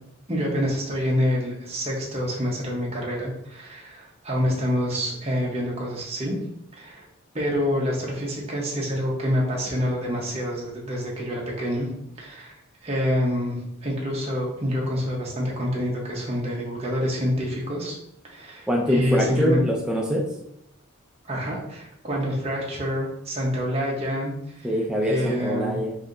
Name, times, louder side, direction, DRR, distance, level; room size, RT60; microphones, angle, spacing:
voice 1, 0.3-6.3 6.7-7.1 7.3-11.9 12.2-12.5 12.8-18.0 18.3-19.6 21.2-24.7 25.0-25.8, equal, 30° right, -3 dB, 1.0 m, -27 dB
voice 2, 18.7-20.3 24.6-26.0, equal, 5° right, 0 dB, 0.3 m, -24 dB
5.5 x 2.7 x 2.6 m, 0.76 s
head